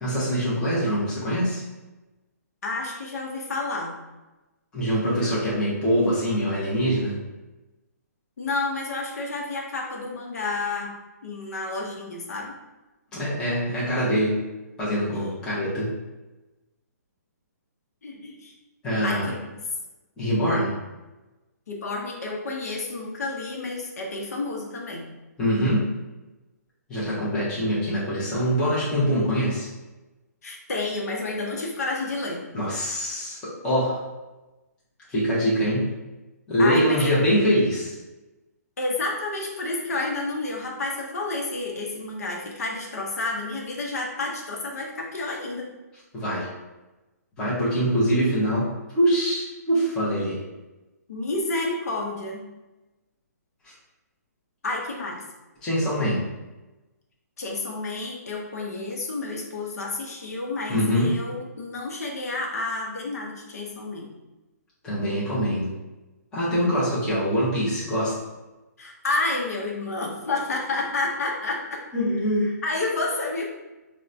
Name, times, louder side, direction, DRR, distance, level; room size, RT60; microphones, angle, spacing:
voice 1, 0.0-1.6 4.7-7.2 13.1-14.4 14.8-15.9 18.8-19.3 20.2-20.7 25.4-25.9 26.9-29.7 32.5-34.1 35.1-35.9 36.5-38.0 46.1-46.5 47.4-50.4 53.6-53.7 55.6-56.2 60.7-61.1 64.8-65.7 66.3-68.2 71.9-72.5, equal, 10° left, -9 dB, 0.6 m, -24 dB
voice 2, 2.6-4.0 8.4-10.9 11.2-12.5 18.0-18.5 19.0-19.5 21.7-25.1 30.4-32.4 36.6-37.2 38.8-45.7 51.1-52.4 54.6-55.2 57.4-64.1 68.8-71.8 72.6-73.5, left 2 dB, 65° left, -1 dB, 0.7 m, -30 dB
4.4 x 2.1 x 2.5 m, 1.1 s
hypercardioid pair, 170°, 9 cm